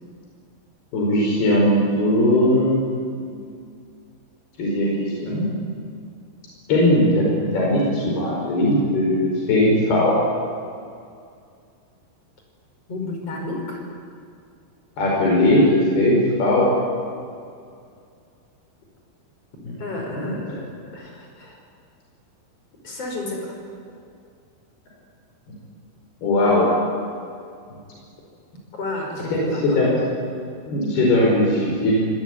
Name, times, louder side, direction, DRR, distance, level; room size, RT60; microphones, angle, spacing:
voice 1, 0.9-2.9 3.3-3.5 4.6-5.5 6.7-10.2 15.0-16.7 20.1-20.4 26.2-26.7 29.3-29.9 30.7-32.1, left 1 dB, 75° left, -3 dB, 7.2 m, -19 dB
voice 2, 12.9-13.8 19.8-21.6 22.8-23.6 28.7-30.0, left 2 dB, 40° left, 1 dB, 6.1 m, -31 dB
25.5 x 20.0 x 9.8 m, 2.3 s
omnidirectional pair, 4.5 m